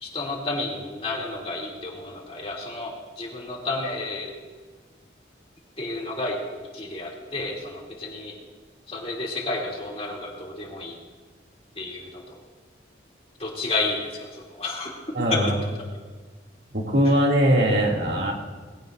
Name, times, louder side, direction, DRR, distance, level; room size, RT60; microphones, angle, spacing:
voice 1, 0.0-4.3 5.8-6.4 6.7-8.3 8.9-10.9 11.8-12.4 13.4-14.9 15.3-15.4, left 2 dB, 30° left, -3 dB, 2.9 m, -31 dB
voice 2, 15.1-15.5 16.7-18.3, equal, 60° right, -1 dB, 2.6 m, -21 dB
21.0 x 16.5 x 2.6 m, 1.4 s
head